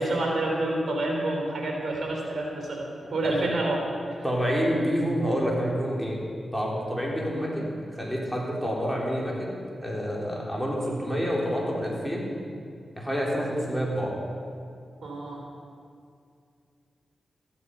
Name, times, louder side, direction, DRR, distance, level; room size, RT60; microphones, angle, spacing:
voice 1, 0.0-3.8 4.1-4.2 15.0-15.4, right 2 dB, 65° right, 0 dB, 3.4 m, -28 dB
voice 2, 4.2-6.3 6.5-9.5 9.8-12.4 13.0-14.1, equal, ahead, -4 dB, 4.1 m, -28 dB
14.5 x 12.0 x 5.6 m, 2.3 s
cardioid pair, 50°, 0 cm